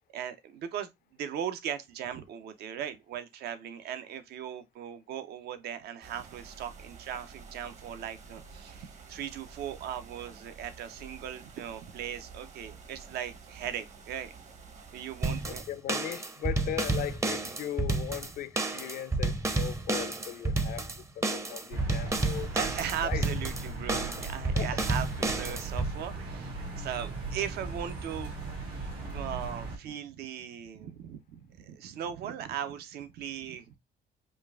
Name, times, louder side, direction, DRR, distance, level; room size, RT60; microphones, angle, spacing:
voice 1, 0.1-14.4 14.9-15.6 22.5-28.3 29.1-33.8, right 9 dB, 70° right, 0.7 m, -38 dB
sound 1, 6.0-15.6, right 5 dB, 45° right, 0.9 m, -50 dB
sound 2, 15.2-25.9, right 3 dB, 15° right, 0.6 m, -31 dB
voice 2, 15.5-20.9 21.2-22.5 23.0-23.3 24.5-24.8, left 11 dB, 60° left, 0.5 m, -38 dB
sound 3, 21.7-29.8, right 3 dB, 85° right, 2.5 m, -38 dB
5.1 x 2.4 x 2.3 m
cardioid pair, 110°, 17 cm